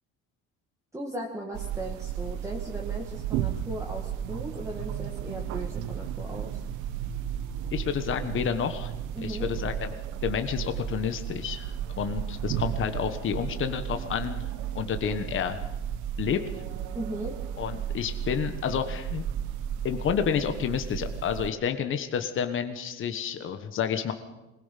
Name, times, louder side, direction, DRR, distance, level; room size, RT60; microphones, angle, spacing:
voice 1, 0.9-6.6 9.1-9.5 16.9-17.4, right 1 dB, 10° right, -2 dB, 2.2 m, -37 dB
sound 1, 1.5-21.5, right 10 dB, 80° right, 1.2 m, -34 dB
voice 2, 7.7-8.9 9.2-10.0 10.2-14.5 14.7-15.6 16.2-16.4 17.6-19.2 19.8-24.1, left 8 dB, 45° left, 8 dB, 1.4 m, -30 dB
22.0 x 20.0 x 5.9 m, 1.1 s
cardioid pair, 135°, 29 cm